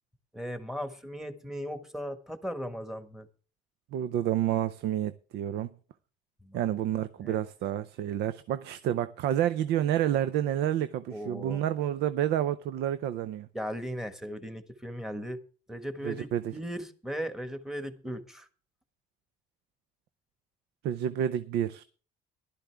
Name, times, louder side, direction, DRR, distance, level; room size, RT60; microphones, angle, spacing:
voice 1, 0.3-3.3 6.4-6.6 7.2-7.4 11.1-11.7 13.5-15.4 15.7-18.5, equal, 5° right, 1.5 m, -37 dB
voice 2, 3.9-5.7 6.5-13.5 16.0-16.5 20.8-21.8, right 11 dB, 80° right, 0.6 m, -29 dB
15.0 x 12.0 x 3.4 m
cardioid pair, 110°, 17 cm